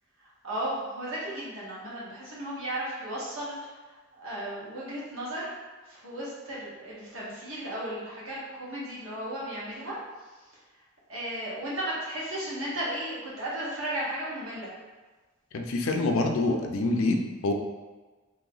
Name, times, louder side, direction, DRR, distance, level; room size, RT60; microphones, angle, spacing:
voice 1, 0.4-3.6 4.1-5.4 5.9-10.0 11.1-14.7, right 1 dB, 70° right, -7 dB, 1.3 m, -35 dB
voice 2, 15.5-17.5, left 2 dB, 75° left, 4 dB, 0.5 m, -26 dB
3.1 x 2.9 x 3.8 m, 1.3 s
head